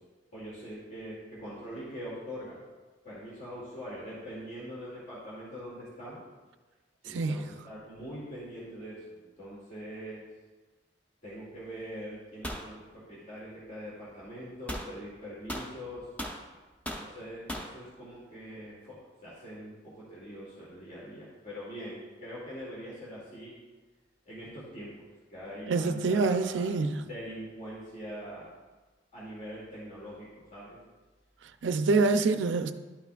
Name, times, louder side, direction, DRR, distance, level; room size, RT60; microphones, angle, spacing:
voice 1, 0.3-2.6 3.0-6.2 7.0-10.2 11.2-16.1 17.0-23.6 24.3-28.5 29.1-30.8, equal, 45° left, 2.2 m, -43 dB
sound 1, 12.4-12.7 14.7-14.9 15.5-16.4 16.9-17.1 17.5-17.7, equal, 10° left, 0.7 m, -37 dB
voice 2, 25.7-27.0 31.6-32.7, right 3 dB, 75° right, 0.4 m, -26 dB
12.0 x 5.8 x 2.3 m
head